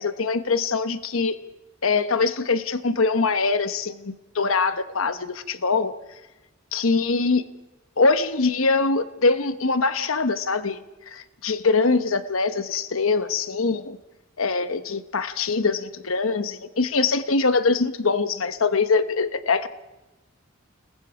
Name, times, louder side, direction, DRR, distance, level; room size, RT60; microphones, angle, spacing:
voice 1, 0.0-1.4 1.8-5.9 6.7-7.4 8.0-10.8 11.1-14.0 14.4-19.7, left 4 dB, 80° left, 11 dB, 1.1 m, -23 dB
30.0 x 20.5 x 4.9 m, 1.1 s
head